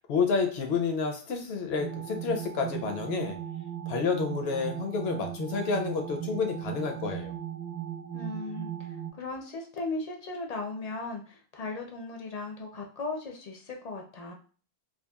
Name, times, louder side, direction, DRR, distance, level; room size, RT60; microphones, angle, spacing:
voice 1, 0.1-3.4 3.9-7.3, left 5 dB, 85° left, 4 dB, 0.9 m, -29 dB
sound 1, 1.8-9.1, right 10 dB, 55° right, 0.6 m, -37 dB
voice 2, 8.1-8.9 9.2-14.3, left 3 dB, 50° left, 2 dB, 0.5 m, -37 dB
2.9 x 2.3 x 2.2 m, 0.41 s
omnidirectional pair, 1.0 m